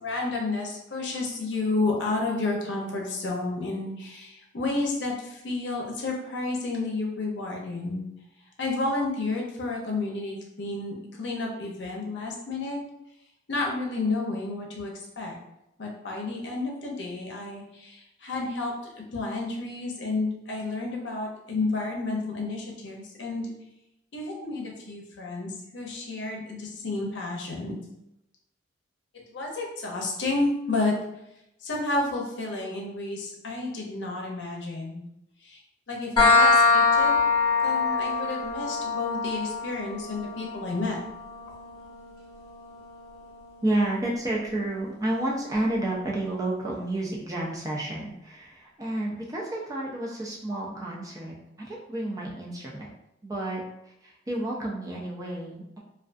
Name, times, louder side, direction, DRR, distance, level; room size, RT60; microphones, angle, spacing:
voice 1, 0.0-8.0 8.6-12.8 13.5-15.3 15.8-18.7 19.1-23.5 24.1-27.8 29.3-30.9 31.6-35.0 35.4-35.6 35.9-37.1 37.6-41.0, left 3 dB, 70° left, -1 dB, 0.6 m, -31 dB
sound 1, 36.2-43.6, left 4 dB, 20° left, 0.7 m, -24 dB
voice 2, 43.6-52.9 53.2-55.8, right 1 dB, 20° right, -3 dB, 0.3 m, -30 dB
2.3 x 2.3 x 2.4 m, 0.84 s
head